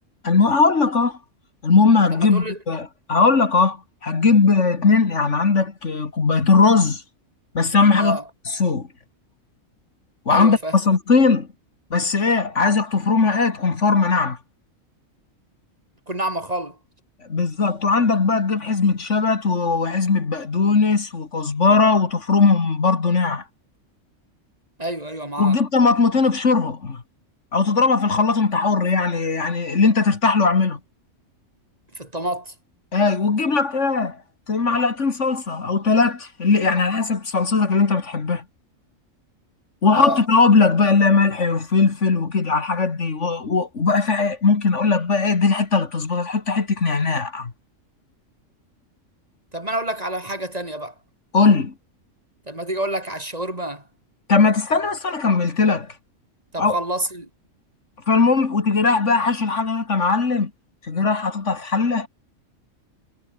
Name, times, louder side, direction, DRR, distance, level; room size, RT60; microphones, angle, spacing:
voice 1, 0.2-1.2 1.6-7.0 7.5-8.2 8.6-8.9 10.3-11.5 11.9-14.4 17.3-23.4 25.4-27.0 27.5-30.8 32.9-34.2 34.5-38.4 39.8-47.5 51.3-51.7 54.3-55.9 56.6-56.8 58.1-60.5 60.9-62.1, left 4 dB, 60° left, 2.4 m, -19 dB
voice 2, 2.1-2.6 7.9-8.2 10.3-10.8 16.1-16.8 24.8-25.6 32.0-32.5 39.9-40.2 49.5-50.9 52.5-53.8 56.5-57.3, right 1 dB, 30° right, 3.9 m, -28 dB
omnidirectional pair, 1.4 m